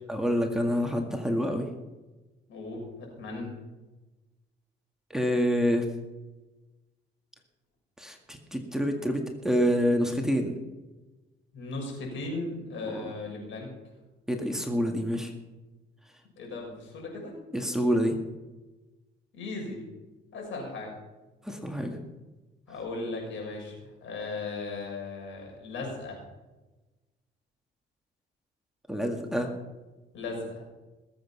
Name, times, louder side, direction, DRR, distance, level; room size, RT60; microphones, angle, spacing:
voice 1, 0.1-1.7 5.1-5.9 8.0-10.5 12.9-13.1 14.3-15.3 17.5-18.2 21.4-22.0 28.9-29.5, equal, ahead, 2 dB, 2.0 m, -27 dB
voice 2, 2.5-3.5 11.5-13.7 16.4-17.3 19.3-19.8 20.3-20.9 22.7-26.2 30.1-30.5, left 3 dB, 75° left, 1 dB, 6.0 m, -37 dB
20.5 x 7.9 x 5.7 m, 1.1 s
cardioid pair, 90°, 20 cm